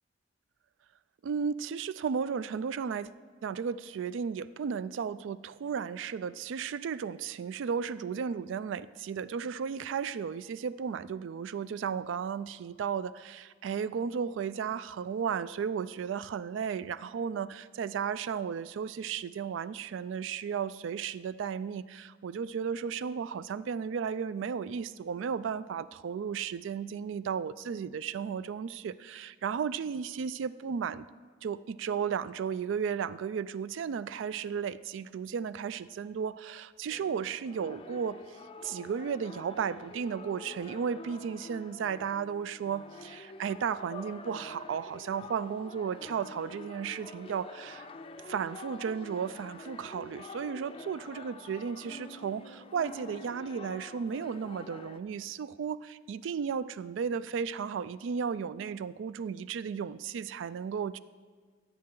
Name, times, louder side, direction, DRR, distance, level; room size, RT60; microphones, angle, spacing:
voice 1, 1.2-3.1 3.4-31.1 31.4-38.2 38.6-47.9 48.3-61.0, right 6 dB, 70° right, 17 dB, 0.3 m, -34 dB
sound 1, 36.9-55.0, left 3 dB, 30° left, 0.4 m, -47 dB
14.5 x 8.6 x 3.8 m, 1.5 s
head